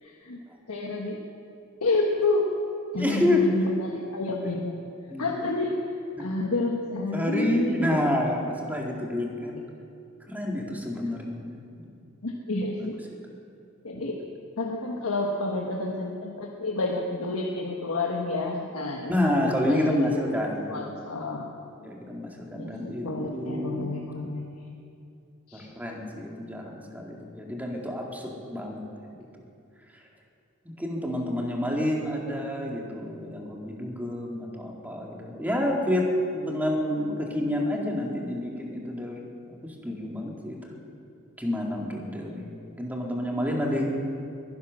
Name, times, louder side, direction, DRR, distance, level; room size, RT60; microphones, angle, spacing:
voice 1, 0.0-0.4 0.7-1.2 1.8-2.5 2.9-4.8 5.2-5.7 6.2-8.0 12.2-12.9 13.8-14.2 14.6-20.2 20.7-21.5 22.5-24.7 25.5-25.7, left 2 dB, 80° left, 0 dB, 1.4 m, -29 dB
voice 2, 3.0-3.4 5.1-5.3 6.2-6.3 7.1-9.6 10.3-11.8 19.1-20.8 21.8-23.1 23.3-23.9 25.5-28.8 30.7-40.7 41.4-42.4 42.7-43.9, left 1 dB, 10° right, -1 dB, 2.1 m, -29 dB
21.5 x 10.5 x 6.3 m, 2.6 s
head